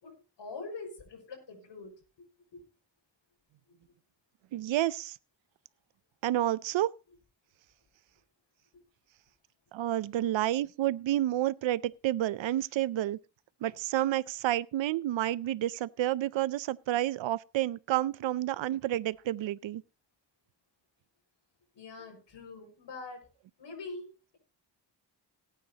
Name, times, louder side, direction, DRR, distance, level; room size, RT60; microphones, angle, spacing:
voice 1, 0.0-2.0 2.5-2.6 8.7-8.8 21.7-23.3 23.6-24.4, left 3 dB, 70° left, 5.7 m, -44 dB
voice 2, 4.5-5.2 6.2-6.9 9.7-13.2 13.6-19.8, right 13 dB, 90° right, 0.6 m, -30 dB
18.0 x 9.2 x 2.8 m
wide cardioid pair, 100°, 44 cm